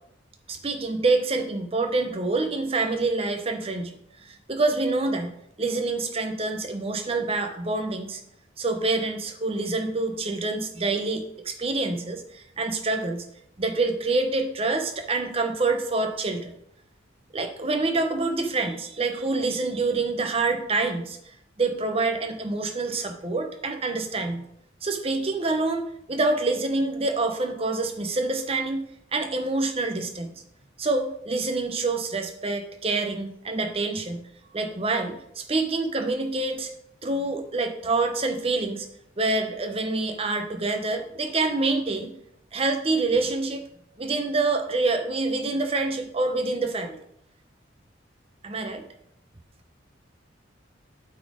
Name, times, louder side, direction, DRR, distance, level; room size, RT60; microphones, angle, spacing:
voice 1, 0.5-4.0 4.2-8.2 8.6-13.3 13.6-16.5 17.3-21.2 21.6-24.5 24.8-28.8 29.1-30.3 30.8-34.3 34.5-36.7 37.0-38.9 39.2-42.1 42.5-43.6 44.0-47.0 48.4-48.8, right 3 dB, 30° right, 6 dB, 0.8 m, -26 dB
8.4 x 4.3 x 4.9 m, 0.74 s
head